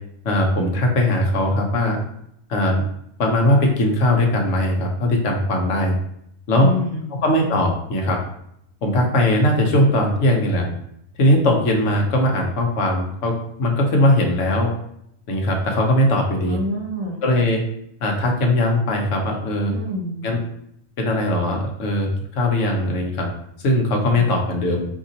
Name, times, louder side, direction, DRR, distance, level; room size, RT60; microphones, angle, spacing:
voice 1, 0.2-2.0 2.5-2.8 3.2-6.0 6.5-6.7 7.2-8.2 8.8-10.7 11.2-14.7 15.3-16.6 17.2-17.6 18.0-19.7 20.2-20.4 21.0-23.3 23.6-24.9, left 1 dB, 65° left, 1 dB, 1.0 m, -19 dB
voice 2, 6.5-7.1 16.5-17.2 19.7-20.2 24.1-24.3, left 1 dB, 75° right, 0 dB, 1.2 m, -27 dB
3.8 x 2.9 x 2.7 m, 0.74 s
omnidirectional pair, 1.5 m